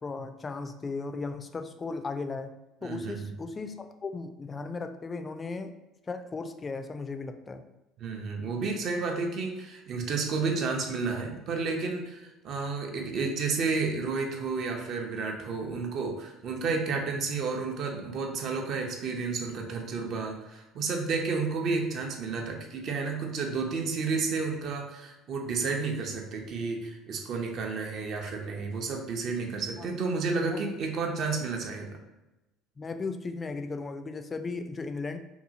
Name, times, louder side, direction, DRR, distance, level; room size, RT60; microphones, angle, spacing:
voice 1, 0.0-2.5 2.8-5.7 6.1-7.6 29.8-29.9 30.5-30.7 32.8-35.2, left 3 dB, 30° left, 8 dB, 0.3 m, -36 dB
voice 2, 2.8-3.2 8.0-31.9, right 4 dB, 55° right, 2 dB, 0.6 m, -31 dB
2.7 x 2.4 x 2.7 m, 0.98 s
hypercardioid pair, 75°, 0 cm